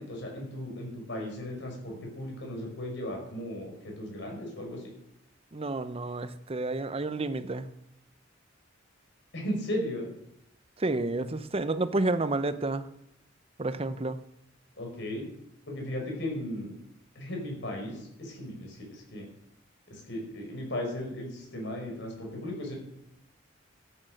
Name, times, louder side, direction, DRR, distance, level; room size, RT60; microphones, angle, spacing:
voice 1, 0.0-4.9 9.3-10.1 14.8-15.3 15.7-16.8 17.2-19.3 19.9-22.8, left 1 dB, 60° left, 5.1 m, -36 dB
voice 2, 5.5-7.7 10.8-12.9 13.6-14.2, right 2 dB, 30° right, 0.7 m, -30 dB
13.0 x 8.9 x 6.4 m
head